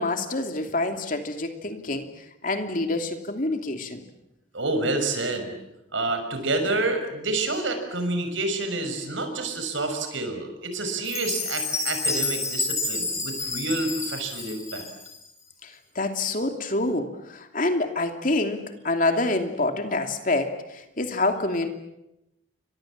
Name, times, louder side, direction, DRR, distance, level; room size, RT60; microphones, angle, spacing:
voice 1, 0.0-2.1 2.4-4.0 15.6-21.7, left 2 dB, 45° left, 5 dB, 2.9 m, -27 dB
voice 2, 4.5-5.6 5.9-14.9, right 2 dB, 75° right, 6 dB, 6.1 m, -28 dB
Chime, 11.0-15.2, left 3 dB, 15° left, 7.0 m, -29 dB
29.5 x 24.5 x 7.6 m, 0.87 s
head